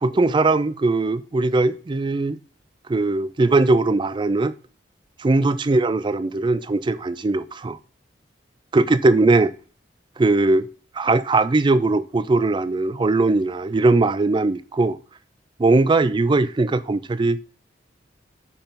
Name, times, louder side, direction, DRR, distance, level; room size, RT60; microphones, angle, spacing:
voice 1, 0.0-2.4 2.9-4.5 5.2-7.8 8.7-9.5 10.2-10.7 11.0-15.0 15.6-17.4, right 3 dB, 25° right, 0.4 m, -20 dB
5.8 x 4.6 x 5.1 m
head